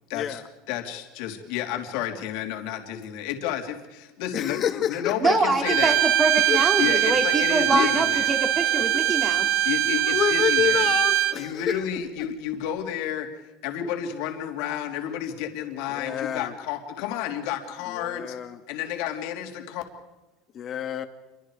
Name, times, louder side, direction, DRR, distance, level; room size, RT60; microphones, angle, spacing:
voice 1, 0.1-0.4 0.7-6.0 6.8-8.3 9.6-10.9 11.3-13.3 13.6-18.3 18.7-19.8, left 10 dB, 65° left, 4 dB, 3.2 m, -31 dB
voice 2, 4.3-5.1 6.5-6.6 7.7-7.9 8.7-9.0 9.8-11.8 15.9-16.5 17.9-18.6 20.5-21.1, left 10 dB, 35° left, 7 dB, 2.1 m, -28 dB
voice 3, 5.2-9.5 11.7-11.8, right 3 dB, 20° right, 4 dB, 3.4 m, -25 dB
Bowed string instrument, 5.6-11.4, right 12 dB, 70° right, 1.7 m, -22 dB
28.0 x 24.0 x 5.0 m, 1.1 s
supercardioid pair, 135°, 0 cm